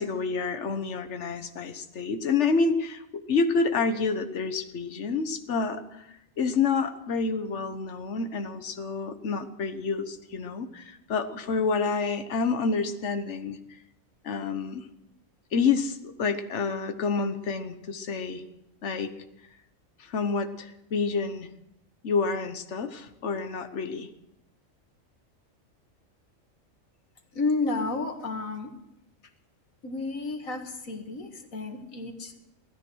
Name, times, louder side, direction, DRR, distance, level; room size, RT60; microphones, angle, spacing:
voice 1, 0.0-6.1 6.4-13.6 14.2-14.9 15.5-18.4 18.8-19.1 20.0-21.5 22.0-24.1, left 4 dB, 60° left, 8 dB, 1.4 m, -28 dB
voice 2, 27.3-28.7 29.8-32.4, left 3 dB, 90° left, 4 dB, 2.2 m, -31 dB
16.5 x 13.0 x 6.3 m, 0.86 s
omnidirectional pair, 1.4 m